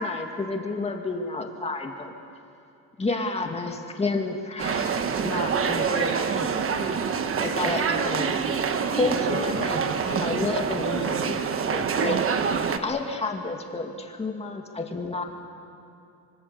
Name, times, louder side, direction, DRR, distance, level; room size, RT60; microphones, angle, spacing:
voice 1, 0.0-2.1 3.0-6.5 7.4-8.3 8.9-11.4 11.7-12.2 12.5-15.2, left 3 dB, 20° left, 3 dB, 2.0 m, -30 dB
sound 1, 4.6-12.8, right 6 dB, 40° right, 1.2 m, -26 dB
25.5 x 25.0 x 6.9 m, 2.7 s
cardioid pair, 160°, 34 cm